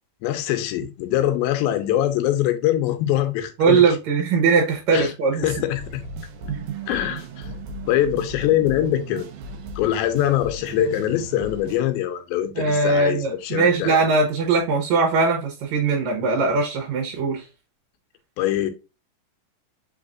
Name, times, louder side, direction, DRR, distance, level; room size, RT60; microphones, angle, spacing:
voice 1, 0.2-4.0 4.9-5.1 5.4-6.0 6.9-7.5 7.9-9.3 9.8-14.0 18.4-18.7, left 12 dB, 85° left, 2.4 m, -23 dB
voice 2, 3.6-5.5 6.5-6.6 12.6-17.4, right 4 dB, 70° right, 1.9 m, -20 dB
sound 1, 5.7-11.8, right 2 dB, 85° right, 1.7 m, -36 dB
5.5 x 3.4 x 2.4 m
omnidirectional pair, 4.2 m